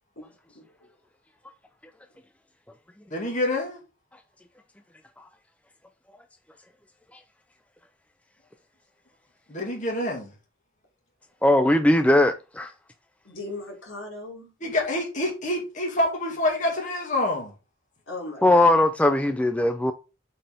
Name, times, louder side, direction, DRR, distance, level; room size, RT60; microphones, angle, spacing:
voice 1, 0.2-0.7 13.2-14.5 18.1-18.7, left 1 dB, 75° left, 4.0 m, -38 dB
voice 2, 3.1-3.8 9.5-10.3 14.6-17.5, left 1 dB, 40° left, 2.3 m, -27 dB
voice 3, 11.4-12.7 18.4-19.9, left 1 dB, 5° left, 0.4 m, -19 dB
7.7 x 4.2 x 3.9 m
head